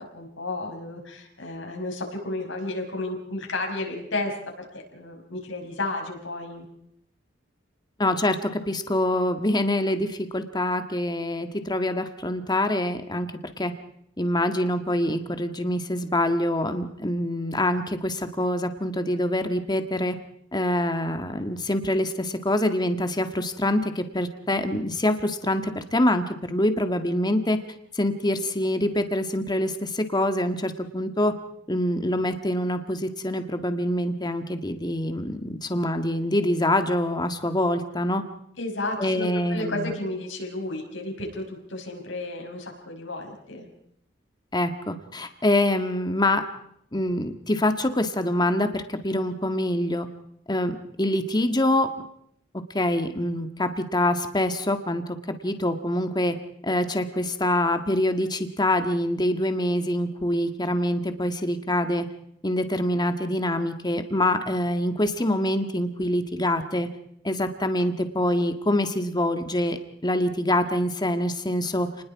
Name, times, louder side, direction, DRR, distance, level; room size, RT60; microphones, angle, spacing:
voice 1, 0.0-4.7 4.9-6.6 38.6-43.7, left 2 dB, 80° left, 2 dB, 5.7 m, -32 dB
voice 2, 8.0-13.3 13.6-13.7 14.2-20.2 20.5-27.6 28.0-31.3 31.7-38.2 39.0-39.9 44.5-46.4 46.9-50.1 50.5-51.9 52.7-55.0 55.4-56.4 56.6-62.1 62.4-66.9 67.2-72.0, left 1 dB, 20° left, 7 dB, 1.8 m, -25 dB
30.0 x 20.5 x 4.8 m, 0.70 s
head